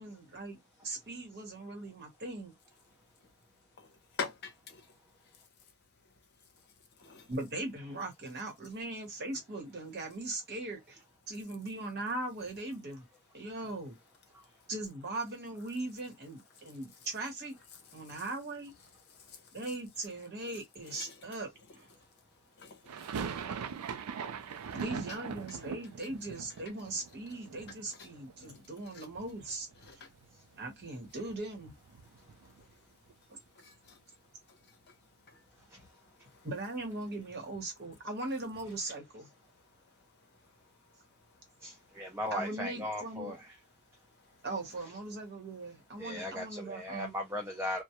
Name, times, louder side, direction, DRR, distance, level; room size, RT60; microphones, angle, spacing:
voice 1, 0.0-2.5 7.3-13.0 13.3-14.0 14.7-17.6 17.9-18.7 19.5-21.9 24.7-29.7 30.6-31.7 36.4-39.3 42.3-43.3 44.4-47.1, right 2 dB, 45° right, 1.0 m, -39 dB
voice 2, 4.2-4.8 7.0-7.3 20.9-21.2 22.6-22.9 24.7-24.8 28.9-29.1 29.9-30.1 33.6-34.0, left 5 dB, 50° left, 0.7 m, -42 dB
sound 1, 22.9-28.8 29.1-29.9 30.2-30.3 30.5-32.7, right 6 dB, 85° right, 0.4 m, -42 dB
voice 3, 41.6-43.4 46.0-47.8, left 1 dB, 10° right, 0.4 m, -37 dB
2.1 x 2.1 x 2.9 m
head